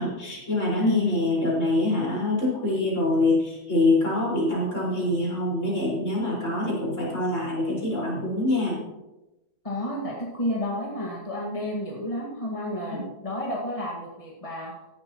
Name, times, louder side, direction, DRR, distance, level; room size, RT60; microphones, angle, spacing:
voice 1, 0.0-8.8 12.9-13.0, left 2 dB, 50° left, -6 dB, 5.4 m, -25 dB
voice 2, 0.8-1.2 9.6-14.7, left 1 dB, 20° left, -3 dB, 1.9 m, -30 dB
16.0 x 12.0 x 3.0 m, 1.0 s
omnidirectional pair, 1.6 m